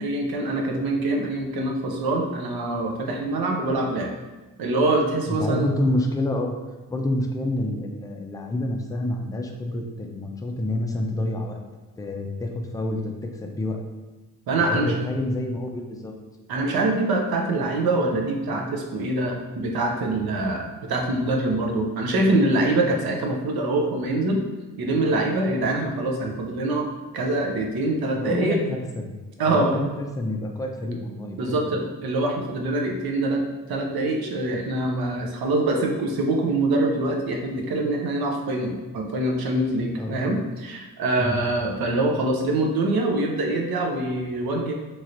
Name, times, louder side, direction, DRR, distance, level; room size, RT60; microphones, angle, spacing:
voice 1, 0.0-4.1 4.6-5.7 14.5-15.0 16.5-24.4 24.8-26.9 27.1-28.6 29.4-29.8 31.4-44.7, right 2 dB, 65° right, 2 dB, 0.7 m, -24 dB
voice 2, 5.3-6.6 6.9-11.6 12.0-13.8 14.5-16.1 28.1-29.1 29.4-31.6 39.9-40.2 41.2-41.4, left 1 dB, 10° left, 2 dB, 0.3 m, -28 dB
3.0 x 2.9 x 2.5 m, 1.2 s
cardioid pair, 70°, 40 cm